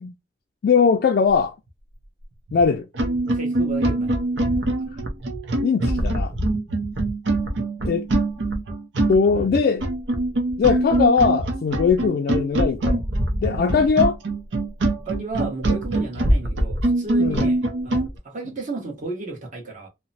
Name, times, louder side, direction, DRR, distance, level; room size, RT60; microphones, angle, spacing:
voice 1, 0.6-1.5 2.5-2.9 5.6-6.3 7.8-8.1 9.1-9.8 10.6-13.0 13.4-14.2 17.2-17.5, left 5 dB, 55° left, 0.3 m, -20 dB
sound 1, 2.5-2.6 2.9-18.1, right 1 dB, 90° right, 0.6 m, -23 dB
voice 2, 3.3-4.1 9.3-9.5 15.1-19.9, right 3 dB, 45° right, 1.1 m, -33 dB
2.9 x 2.1 x 2.6 m
head